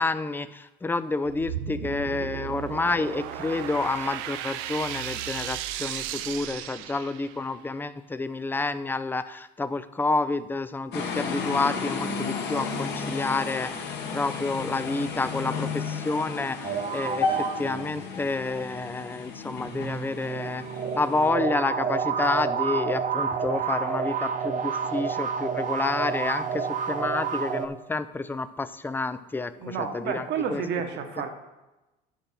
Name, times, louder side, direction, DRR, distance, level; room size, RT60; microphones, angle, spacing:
voice 1, 0.0-20.6 20.9-30.6, left 3 dB, 10° left, 13 dB, 0.4 m, -29 dB
sound 1, 1.2-7.5, right 11 dB, 80° right, 0.5 m, -35 dB
sound 2, 10.9-21.3, left 4 dB, 55° left, 1.6 m, -33 dB
sound 3, 16.6-18.3 19.6-27.7, right 6 dB, 40° right, 0.8 m, -29 dB
voice 2, 29.6-31.3, right 7 dB, 60° right, 6 dB, 1.3 m, -31 dB
10.0 x 5.6 x 4.4 m, 1.0 s
supercardioid pair, 95°, 20 cm